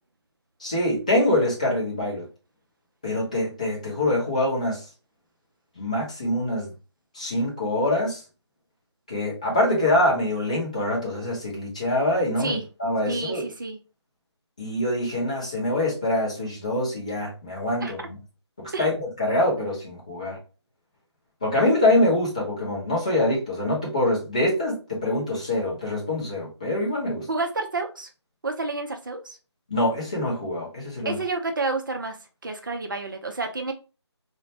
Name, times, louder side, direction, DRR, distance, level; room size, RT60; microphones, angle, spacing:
voice 1, 0.6-2.3 3.0-4.8 5.8-6.7 7.1-8.2 9.1-13.4 14.6-18.1 18.6-20.4 21.4-27.3 29.7-31.2, left 1 dB, 15° left, 0.5 m, -25 dB
voice 2, 13.1-13.8 17.8-17.9 18.7-18.9 27.3-28.1 28.4-29.4 31.0-32.2 32.4-33.7, right 3 dB, 45° right, 0.5 m, -29 dB
2.5 x 2.1 x 2.9 m
figure-of-eight pair, 160°, 15 cm